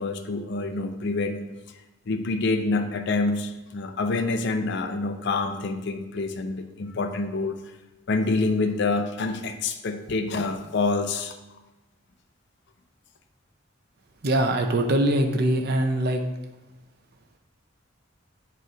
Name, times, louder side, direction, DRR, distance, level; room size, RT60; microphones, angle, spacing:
voice 1, 0.0-1.4 2.1-7.6 8.1-11.4, left 3 dB, 60° left, 6 dB, 0.5 m, -27 dB
voice 2, 14.2-16.2, right 1 dB, 55° right, 4 dB, 0.6 m, -22 dB
8.0 x 3.2 x 5.0 m, 1.0 s
head